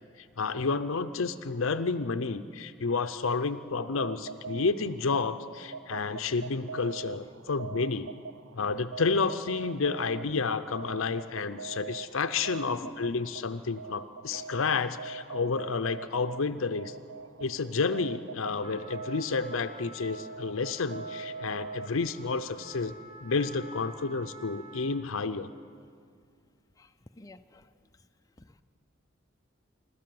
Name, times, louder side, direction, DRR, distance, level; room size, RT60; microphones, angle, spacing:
voice 1, 0.2-8.1 8.5-17.0 17.4-22.9 23.2-25.5, left 4 dB, 75° left, 10 dB, 0.6 m, -30 dB
sound 1, 3.9-22.3, right 5 dB, 65° right, 0.5 m, -43 dB
voice 2, 12.7-13.0 14.3-14.5 15.5-15.6 26.8-27.7 28.4-28.6, left 2 dB, 15° left, 7 dB, 0.6 m, -47 dB
Trumpet, 18.6-25.2, right 1 dB, 30° right, 1.7 m, -50 dB
26.0 x 13.0 x 7.7 m, 2.2 s
head